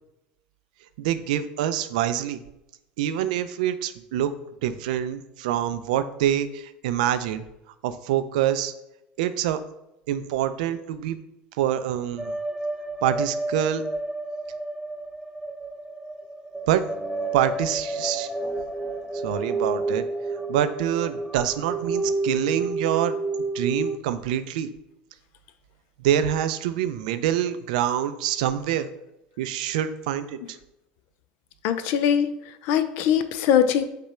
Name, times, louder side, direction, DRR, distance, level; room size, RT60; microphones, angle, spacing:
voice 1, 1.0-2.4 3.0-4.3 4.6-7.4 7.8-8.7 9.2-9.6 10.1-11.2 11.6-12.3 13.0-13.8 16.6-16.9 17.3-18.3 19.2-20.1 20.5-23.2 23.5-24.7 26.0-28.9 29.4-30.4, right 10 dB, 80° right, 12 dB, 0.3 m, -25 dB
sound 1, 12.2-24.0, right 3 dB, ahead, 0.4 m, -30 dB
voice 2, 31.6-33.8, left 9 dB, 65° left, 11 dB, 0.4 m, -22 dB
4.9 x 2.2 x 4.2 m, 0.87 s
supercardioid pair, 95°, 4 cm